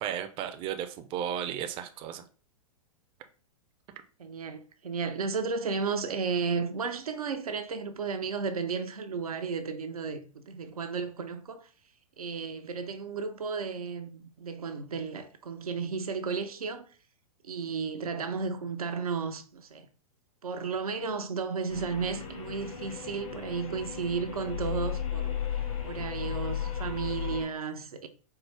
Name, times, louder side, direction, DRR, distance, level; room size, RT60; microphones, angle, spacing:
voice 1, 0.0-2.2, right 9 dB, 30° right, 0.4 m, -34 dB
voice 2, 4.2-11.7 12.2-16.9 17.4-19.9 20.4-25.4 25.8-28.1, right 5 dB, 90° right, 0.5 m, -33 dB
sound 1, 21.7-27.5, left 9 dB, 70° left, 1.3 m, -35 dB
4.3 x 2.0 x 3.3 m
hypercardioid pair, 115°, 18 cm